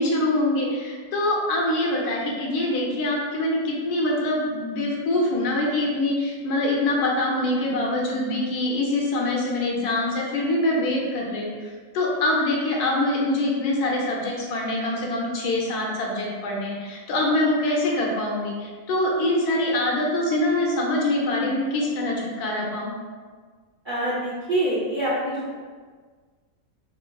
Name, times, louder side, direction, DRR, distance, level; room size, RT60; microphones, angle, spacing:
voice 1, 0.0-22.9, left 1 dB, 75° left, -2 dB, 1.3 m, -24 dB
voice 2, 23.9-25.6, right 1 dB, 55° right, -8 dB, 0.6 m, -25 dB
4.4 x 3.7 x 2.3 m, 1.5 s
omnidirectional pair, 1.7 m